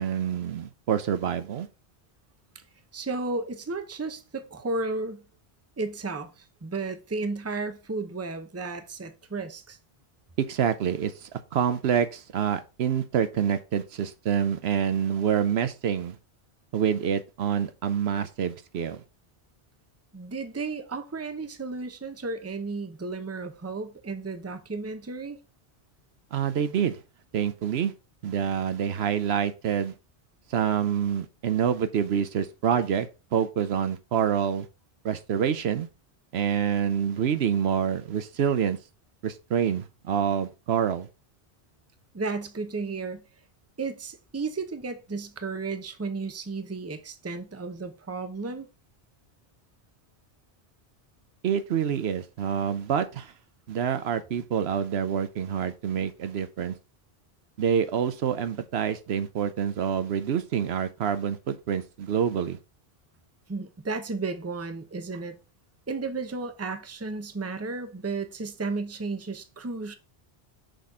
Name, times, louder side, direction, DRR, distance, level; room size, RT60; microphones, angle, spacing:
voice 1, 0.0-1.7 10.4-16.2 16.7-19.0 26.3-27.0 27.3-27.9 28.2-29.9 30.5-34.7 35.0-35.9 36.3-38.8 39.2-41.1 51.4-53.3 53.7-56.8 57.6-62.6, right 8 dB, 75° right, 0.9 m, -27 dB
voice 2, 2.9-5.2 5.8-9.8 20.1-25.4 42.1-43.2 43.8-48.7 63.5-65.3 65.9-69.9, right 3 dB, 15° right, 0.7 m, -33 dB
6.6 x 4.2 x 4.7 m
omnidirectional pair, 1.1 m